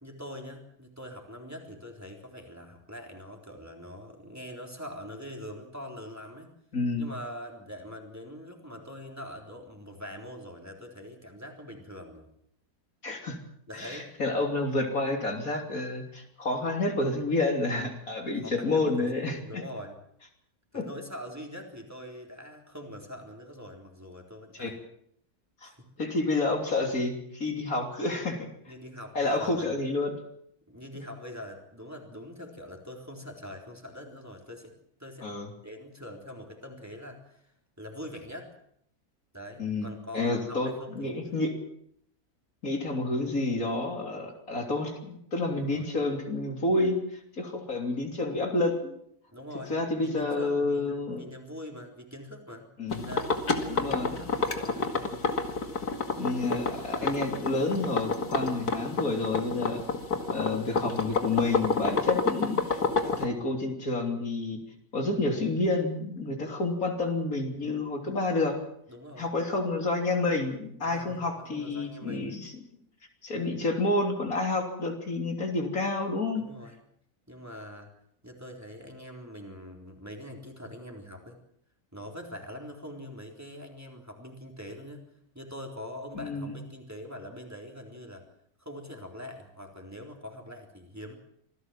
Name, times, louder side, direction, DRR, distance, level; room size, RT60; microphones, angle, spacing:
voice 1, 0.0-6.5 7.0-12.3 13.7-14.1 18.4-19.1 19.4-20.0 20.7-24.7 25.6-25.9 28.7-29.7 30.7-35.3 35.6-38.5 39.3-41.3 45.6-45.9 49.3-52.7 53.0-54.8 56.9-57.3 63.3-63.5 68.9-69.3 70.8-72.4 76.3-76.7 77.3-77.9 78.2-81.4 81.9-85.1 85.3-88.3 88.6-91.2, left 1 dB, 10° right, 1 dB, 3.8 m, -43 dB
voice 2, 6.7-7.1 13.0-13.4 13.7-19.6 20.7-20.9 24.5-24.7 25.6-25.7 26.0-28.5 29.2-30.1 35.2-35.5 39.6-39.9 40.1-41.5 42.6-49.0 49.7-51.2 52.8-53.2 53.7-54.1 56.2-59.8 60.3-64.6 64.9-68.6 69.2-72.6 73.2-76.5 86.1-86.6, left 2 dB, 65° left, 3 dB, 3.7 m, -29 dB
sound 1, 52.9-63.2, left 4 dB, 85° left, 2.6 m, -28 dB
26.0 x 16.5 x 7.6 m, 0.70 s
omnidirectional pair, 1.6 m